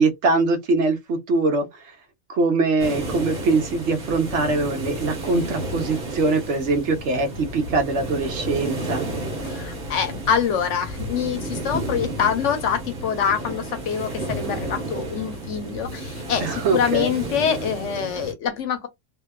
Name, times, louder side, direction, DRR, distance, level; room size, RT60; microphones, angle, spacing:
voice 1, 0.0-2.0 2.3-9.0 16.4-17.1, right 3 dB, 65° right, 0.9 m, -22 dB
sound 1, 2.8-18.3, right 1 dB, 50° right, 1.2 m, -32 dB
voice 2, 9.4-18.9, left 7 dB, 70° left, 1.0 m, -25 dB
2.7 x 2.2 x 2.2 m
omnidirectional pair, 1.3 m